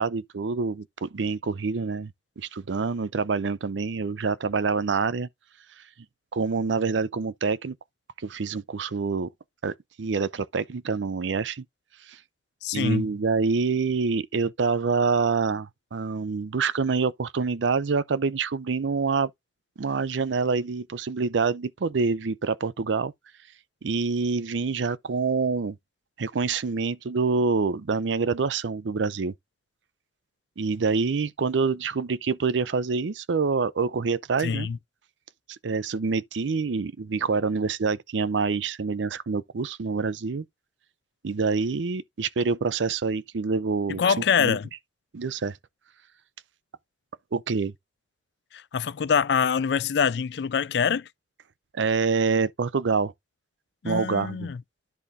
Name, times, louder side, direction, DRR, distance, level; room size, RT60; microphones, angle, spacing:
voice 1, 0.0-5.3 6.3-7.8 8.2-9.3 9.6-11.6 12.1-12.2 12.7-19.3 19.8-23.1 23.8-25.8 26.2-29.3 30.6-34.7 35.5-40.4 41.2-44.6 45.1-45.6 47.3-47.7 51.7-53.1 53.8-54.5, right 4 dB, 85° right, 0.5 m, -26 dB
voice 2, 12.6-13.1 34.4-34.8 44.0-44.7 48.5-51.1 53.8-54.6, left 6 dB, 65° left, 0.4 m, -25 dB
10.5 x 3.7 x 4.1 m
head